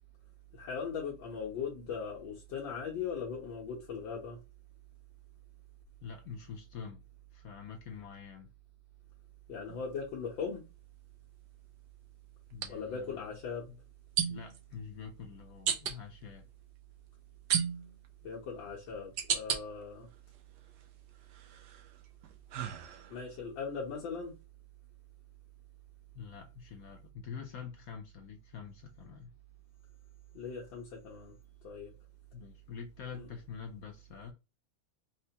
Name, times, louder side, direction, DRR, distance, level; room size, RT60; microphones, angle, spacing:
voice 1, 0.5-4.4 9.5-10.6 12.7-13.7 18.2-20.1 23.1-24.3 30.3-31.3 31.6-31.9 33.1-33.3, left 5 dB, 90° left, 1.6 m, -39 dB
voice 2, 6.0-7.0 7.3-8.5 12.5-13.3 13.7-13.8 14.3-16.5 26.1-29.3 32.3-34.3, left 6 dB, 70° left, 0.8 m, -46 dB
sound 1, 9.7-9.9 12.5-12.7 14.2-14.6 15.7-16.0 17.5-18.1 18.7-19.6 20.2-20.8 21.3-23.3, right 8 dB, 70° right, 1.1 m, -34 dB
4.4 x 2.2 x 2.8 m
omnidirectional pair, 2.0 m